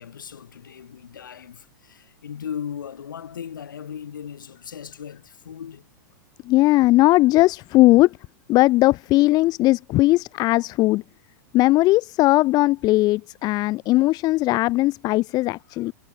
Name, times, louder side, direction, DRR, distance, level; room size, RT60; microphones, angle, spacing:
voice 1, 0.0-5.9, left 8 dB, 75° left, 2.5 m, -37 dB
voice 2, 6.4-8.2 8.5-11.0 11.5-15.9, left 18 dB, 40° left, 1.3 m, -18 dB
hypercardioid pair, 100°, 11 cm